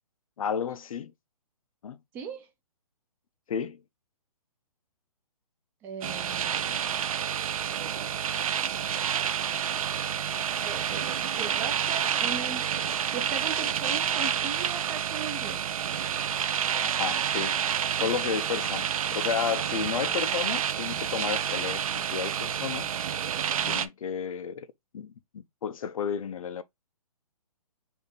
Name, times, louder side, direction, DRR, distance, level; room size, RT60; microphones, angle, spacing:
voice 1, 0.4-1.1 1.8-2.0 3.5-3.8 6.7-7.0 16.8-17.5 18.0-22.9 23.6-24.7 24.9-25.1 25.6-26.6, left 7 dB, 65° left, 0.6 m, -32 dB
voice 2, 2.1-2.5 5.8-6.6 10.6-12.7 13.1-15.6, right 6 dB, 10° right, 0.5 m, -38 dB
sound 1, 6.0-23.9, right 9 dB, 65° right, 0.5 m, -29 dB
4.3 x 2.7 x 3.6 m
hypercardioid pair, 165°, 19 cm